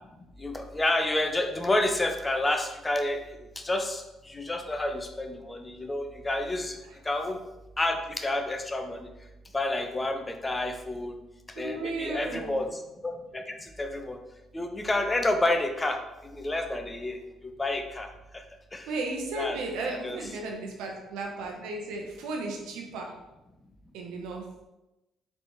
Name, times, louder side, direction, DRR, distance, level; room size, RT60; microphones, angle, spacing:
voice 1, 0.4-3.2 3.6-6.8 7.0-7.4 7.8-9.1 9.5-11.2 11.6-14.2 14.5-18.4 18.7-18.9 19.3-19.6 20.0-20.3, left 2 dB, 25° left, 6 dB, 0.6 m, -30 dB
voice 2, 11.6-12.5 18.9-23.1 23.9-24.4, right 2 dB, 75° right, 1 dB, 0.7 m, -34 dB
4.2 x 3.3 x 2.9 m, 0.99 s
hypercardioid pair, 55°, 0 cm